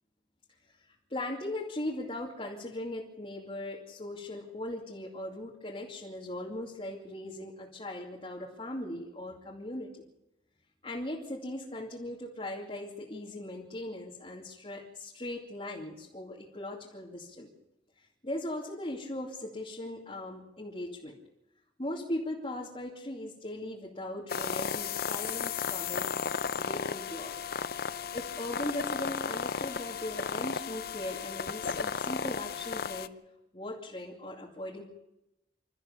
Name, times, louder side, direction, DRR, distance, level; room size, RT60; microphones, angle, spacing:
voice 1, 1.1-9.9 10.8-17.5 18.2-21.1 21.8-26.1 26.6-27.4 28.1-33.1 33.5-34.8, left 1 dB, 30° left, -4 dB, 2.7 m, -39 dB
sound 1, 24.3-33.1, left 6 dB, 55° left, 0.7 m, -34 dB
28.0 x 14.0 x 6.8 m, 0.91 s
head